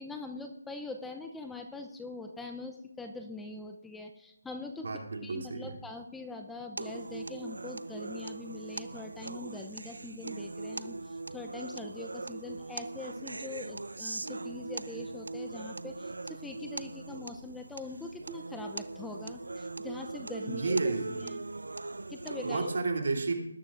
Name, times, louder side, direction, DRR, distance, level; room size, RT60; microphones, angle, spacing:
voice 1, 0.0-4.9 5.2-20.7 21.1-21.4 22.1-22.7, left 3 dB, 5° left, 4 dB, 0.6 m, -43 dB
voice 2, 4.8-5.8 20.5-21.2 22.4-23.5, right 3 dB, 65° right, 2 dB, 3.0 m, -31 dB
sound 1, 6.8-22.8, right 2 dB, 80° right, 0.6 m, -40 dB
20.0 x 12.0 x 2.5 m, 0.82 s
figure-of-eight pair, 155°, 0 cm